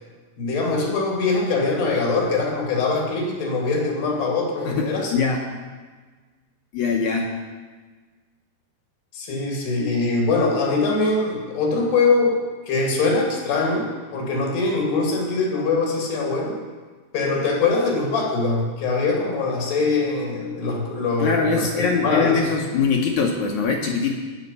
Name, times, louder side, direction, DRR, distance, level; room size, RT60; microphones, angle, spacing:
voice 1, 0.4-5.1 9.1-12.4 12.7-16.6 17.1-22.5, left 3 dB, 85° left, -1 dB, 4.6 m, -22 dB
voice 2, 4.7-5.4 6.7-7.3 21.2-24.2, left 5 dB, 65° left, 1 dB, 2.0 m, -22 dB
18.5 x 7.2 x 5.5 m, 1.4 s
omnidirectional pair, 4.6 m